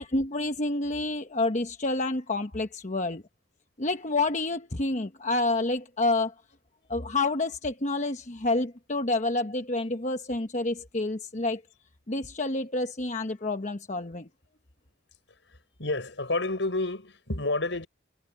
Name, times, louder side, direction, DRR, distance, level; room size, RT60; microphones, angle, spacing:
voice 1, 0.0-3.2 3.8-6.3 6.9-11.6 12.1-14.3, left 2 dB, 40° left, 1.1 m, -28 dB
voice 2, 15.8-17.9, left 2 dB, 80° left, 5.2 m, -29 dB
head